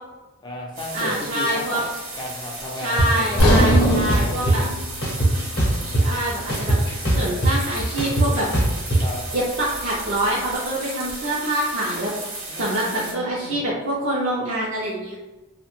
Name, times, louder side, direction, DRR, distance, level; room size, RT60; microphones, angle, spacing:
voice 1, 0.4-1.9 2.1-4.6 9.0-9.2 12.5-13.6, left 1 dB, 20° left, -2 dB, 0.4 m, -33 dB
sound 1, 0.7-13.1, right 2 dB, 75° right, 1.0 m, -35 dB
voice 2, 0.9-1.8 2.8-4.6 6.0-6.8 7.1-8.5 9.3-12.1 12.6-15.1, right 1 dB, 55° right, -6 dB, 0.4 m, -25 dB
sound 2, 3.0-3.1 3.5-4.6 5.0-6.2 6.5-9.0, right 1 dB, 45° left, 0.7 m, -20 dB
sound 3, 3.4-7.4 7.8-8.0 8.5-8.6, equal, 75° left, 0.6 m, -23 dB
2.7 x 2.1 x 2.9 m, 1.1 s
head